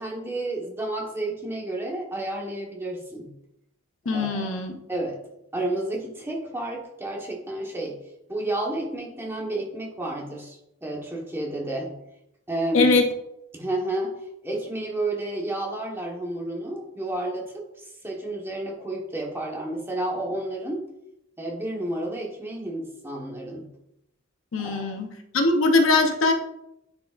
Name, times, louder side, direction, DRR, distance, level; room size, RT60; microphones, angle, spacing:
voice 1, 0.0-3.3 4.0-4.6 4.9-5.2 5.5-8.0 8.3-11.9 12.5-13.0 13.5-14.1 14.4-20.9 21.4-23.7 24.6-24.9, right 1 dB, 10° right, -2 dB, 1.2 m, -31 dB
voice 2, 4.1-4.8 12.7-13.0 24.5-25.1 25.3-26.3, left 3 dB, 70° left, 5 dB, 0.8 m, -21 dB
9.5 x 4.7 x 2.5 m, 0.82 s
head